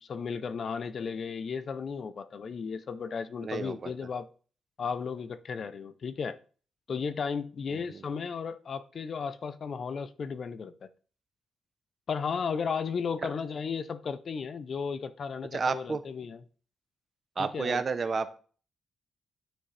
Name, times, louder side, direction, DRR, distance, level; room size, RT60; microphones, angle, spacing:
voice 1, 0.0-4.3 4.8-6.4 6.9-10.9 12.1-16.4 17.4-17.8, left 6 dB, 45° left, 0.5 m, -34 dB
voice 2, 3.4-3.9 7.7-8.0 15.5-16.0 17.4-18.4, right 4 dB, 40° right, 0.7 m, -31 dB
9.7 x 6.0 x 3.3 m
cardioid pair, 135°, 0 cm